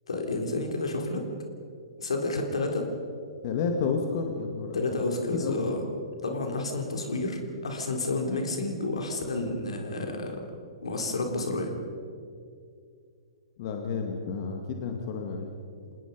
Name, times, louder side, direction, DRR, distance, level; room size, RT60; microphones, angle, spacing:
voice 1, 0.1-1.3 2.0-2.9 4.7-5.8 6.2-10.4 10.8-11.7, left 2 dB, 75° left, 3 dB, 3.8 m, -30 dB
voice 2, 3.4-5.0 5.3-5.7 13.6-15.5, left 5 dB, 50° left, 2 dB, 2.4 m, -31 dB
27.0 x 19.5 x 5.5 m, 2.3 s
figure-of-eight pair, 120°, 3 cm